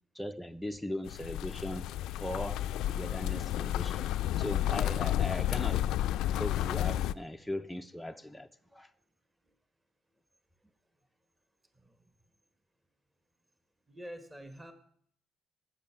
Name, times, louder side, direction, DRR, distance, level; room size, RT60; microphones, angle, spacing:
voice 1, 0.1-1.9 2.2-4.1 4.4-5.9 6.4-8.9, left 1 dB, 5° left, 5 dB, 0.4 m, -39 dB
sound 1, 1.1-7.1, left 12 dB, 85° left, 0.3 m, -31 dB
voice 2, 11.7-12.1 13.9-14.7, equal, 15° right, 8 dB, 1.2 m, -47 dB
14.0 x 6.5 x 5.6 m, 0.64 s
cardioid pair, 120°, 0 cm